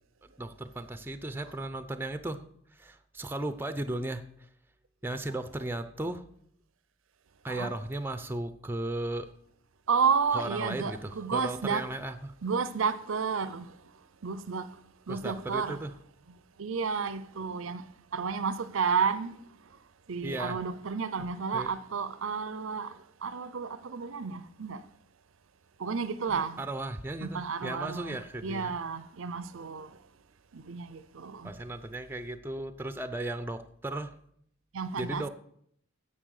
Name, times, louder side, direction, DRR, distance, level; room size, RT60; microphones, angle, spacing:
voice 1, 0.2-2.4 2.7-4.5 5.0-6.2 7.4-9.3 10.3-12.3 15.1-15.9 20.2-20.6 21.2-21.7 26.3-28.8 31.4-34.1 35.0-35.3, right 1 dB, 10° right, 0.6 m, -36 dB
voice 2, 9.9-11.8 12.4-13.6 14.2-14.7 15.1-15.8 16.6-17.8 18.1-19.3 20.1-22.9 23.2-24.8 25.8-26.6 27.2-28.2 28.4-29.9 30.5-31.5 34.7-35.3, right 5 dB, 65° right, 0.6 m, -31 dB
9.9 x 7.6 x 6.5 m
head